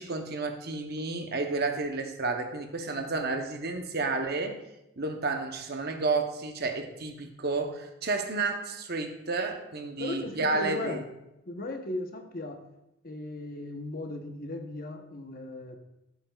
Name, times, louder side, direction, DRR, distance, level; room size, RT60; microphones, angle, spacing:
voice 1, 0.0-4.6 5.0-11.0, right 3 dB, 45° right, 5 dB, 0.8 m, -31 dB
voice 2, 10.0-11.0 11.5-12.6 13.0-15.8, left 2 dB, 40° left, 4 dB, 0.8 m, -37 dB
12.0 x 8.0 x 2.3 m, 0.88 s
head